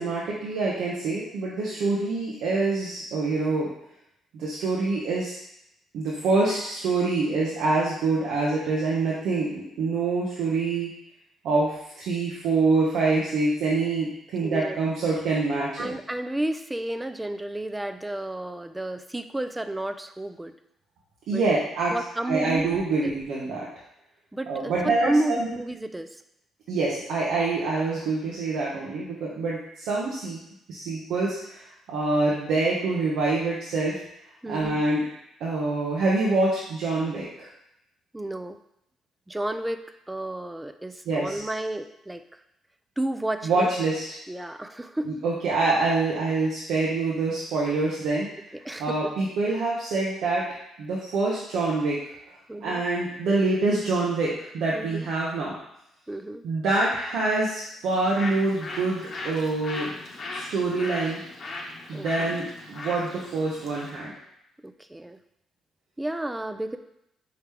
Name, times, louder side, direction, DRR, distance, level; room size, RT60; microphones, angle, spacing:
voice 1, 0.0-3.7 4.3-5.4 5.9-10.9 11.4-15.9 21.3-21.9 22.3-23.7 24.5-25.5 26.7-30.4 30.7-34.0 34.5-35.0 35.4-37.5 41.1-41.4 43.4-44.0 45.0-48.3 48.8-50.4 50.8-52.0 52.6-55.5 56.4-60.0 60.3-61.2 61.9-64.1, right 3 dB, 75° right, -5 dB, 0.8 m, -26 dB
voice 2, 14.4-14.8 15.8-20.5 21.3-21.5 21.9-22.7 23.0-23.1 24.3-26.2 34.4-34.8 38.1-38.6 39.3-42.2 43.0-43.7 44.3-45.1 48.6-49.1 52.5-52.8 54.7-55.1 56.1-56.4 61.9-62.4 64.6-65.2 66.0-66.8, right 1 dB, 10° right, 9 dB, 0.4 m, -31 dB
Bird, 57.8-64.0, left 2 dB, 55° left, 0.9 m, -38 dB
4.8 x 3.1 x 3.4 m, 0.80 s
supercardioid pair, 55°, 0 cm